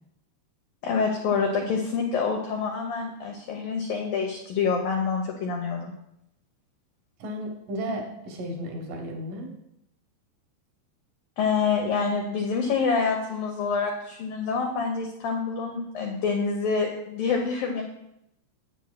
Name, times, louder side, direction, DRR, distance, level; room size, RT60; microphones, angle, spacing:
voice 1, 0.8-5.9 11.4-17.8, left 5 dB, 85° left, 1 dB, 2.0 m, -27 dB
voice 2, 7.2-9.5, equal, 70° right, 2 dB, 2.1 m, -34 dB
13.5 x 8.3 x 2.2 m, 0.81 s
omnidirectional pair, 5.3 m